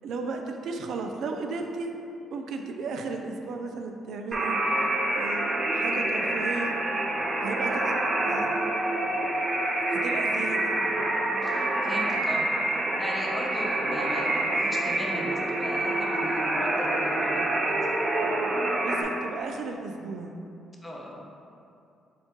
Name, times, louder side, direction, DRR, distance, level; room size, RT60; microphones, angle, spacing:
voice 1, 0.0-1.9 2.3-4.6 5.1-6.7 7.4-8.0 8.2-8.7 9.9-10.8 18.8-20.3, right 3 dB, 75° right, 3 dB, 0.3 m, -34 dB
sound 1, 4.3-19.0, right 1 dB, 40° right, 0.6 m, -27 dB
voice 2, 11.4-17.9 20.8-21.3, equal, 15° left, -1 dB, 0.7 m, -38 dB
4.3 x 3.8 x 2.9 m, 2.6 s
cardioid pair, 90°, 0 cm